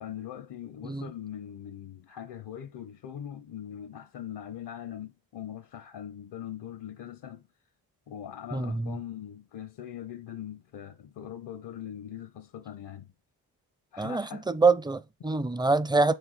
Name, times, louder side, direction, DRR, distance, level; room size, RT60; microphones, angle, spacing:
voice 1, 0.0-7.5 8.1-13.1 13.9-14.5, left 10 dB, 75° left, 0.7 m, -41 dB
voice 2, 8.5-9.0 14.0-16.1, right 3 dB, 10° right, 0.5 m, -25 dB
6.6 x 3.9 x 4.0 m
cardioid pair, 50°, 41 cm